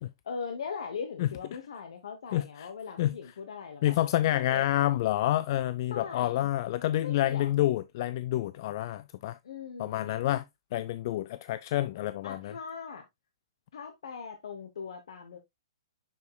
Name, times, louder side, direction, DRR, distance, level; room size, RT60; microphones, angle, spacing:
voice 1, 0.2-4.0 4.3-4.6 5.9-6.5 7.0-7.5 9.4-10.1 12.2-13.1 13.7-15.4, left 6 dB, 70° left, 1.0 m, -40 dB
voice 2, 2.3-2.7 3.0-3.1 3.8-9.4 9.8-10.5 10.7-12.5, left 13 dB, 45° left, 0.3 m, -28 dB
6.8 x 6.5 x 2.2 m
hypercardioid pair, 135°, 3 cm